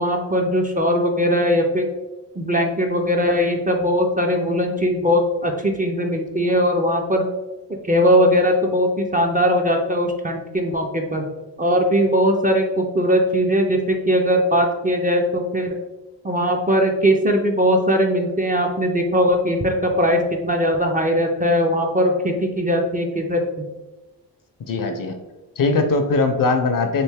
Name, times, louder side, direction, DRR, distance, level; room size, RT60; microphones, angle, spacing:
voice 1, 0.0-1.9 2.4-7.2 7.8-11.2 11.6-15.8 16.2-23.4, equal, 20° right, 2 dB, 0.4 m, -20 dB
voice 2, 24.7-25.2 25.6-27.0, left 3 dB, 50° left, 6 dB, 0.6 m, -20 dB
3.2 x 2.5 x 3.4 m, 1.1 s
cardioid pair, 60°, 43 cm